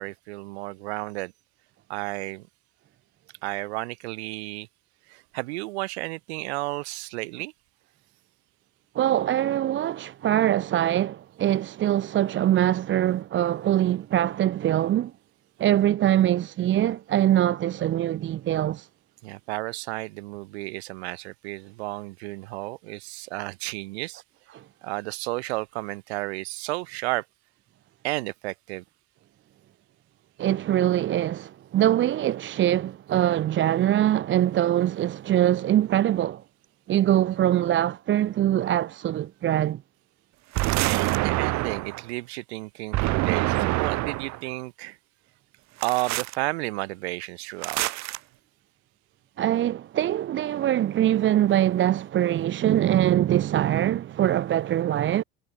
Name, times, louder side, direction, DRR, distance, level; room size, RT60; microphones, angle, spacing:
voice 1, 0.0-1.3 1.9-2.5 3.4-4.7 5.1-7.5 19.2-24.2 24.8-27.2 28.0-28.8 40.8-45.0 45.8-47.8, right 22 dB, 80° right, 1.4 m, -32 dB
voice 2, 8.9-15.1 15.6-18.9 24.5-24.6 30.4-36.4 36.9-39.8 49.4-55.2, right 12 dB, 35° right, 0.8 m, -23 dB
sound 1, 40.5-42.0 42.9-44.4 45.8-46.4 47.6-48.2, right 20 dB, 55° right, 1.5 m, -26 dB
hypercardioid pair, 90°, 32 cm